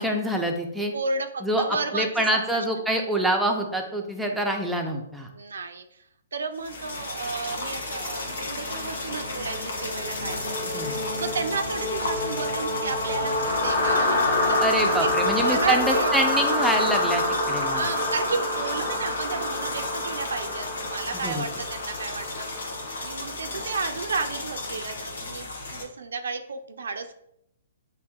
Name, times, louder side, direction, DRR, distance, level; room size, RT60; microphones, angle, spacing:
voice 1, 0.0-0.9 1.4-1.6 1.9-5.3 10.7-11.0 14.6-17.9 21.1-21.4, right 1 dB, ahead, 1 dB, 0.5 m, -26 dB
voice 2, 0.9-2.7 5.3-6.0 6.3-14.6 15.0-16.4 17.7-27.2, right 4 dB, 85° right, 6 dB, 0.4 m, -32 dB
sound 1, 6.5-25.8, left 2 dB, 90° left, 1.1 m, -35 dB
sound 2, 6.8-24.6, left 1 dB, 40° left, 1.3 m, -28 dB
6.8 x 2.8 x 2.3 m, 0.76 s
hypercardioid pair, 150°, 0 cm